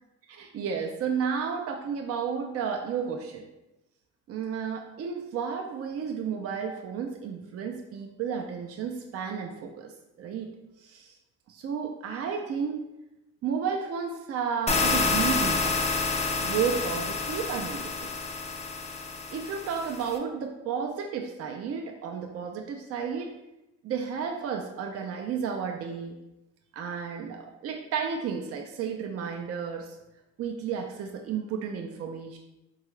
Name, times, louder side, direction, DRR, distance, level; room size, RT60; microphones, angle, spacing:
voice 1, 0.3-3.4 4.3-9.9 10.2-10.5 10.8-11.1 11.5-12.8 13.4-15.8 16.4-18.1 19.3-23.3 23.8-26.2 26.7-30.0 30.4-32.4, right 6 dB, 50° right, 2 dB, 0.4 m, -32 dB
sound 1, 14.7-20.2, left 4 dB, 20° left, 0.4 m, -28 dB
3.6 x 2.3 x 3.1 m, 0.94 s
cardioid pair, 90°, 30 cm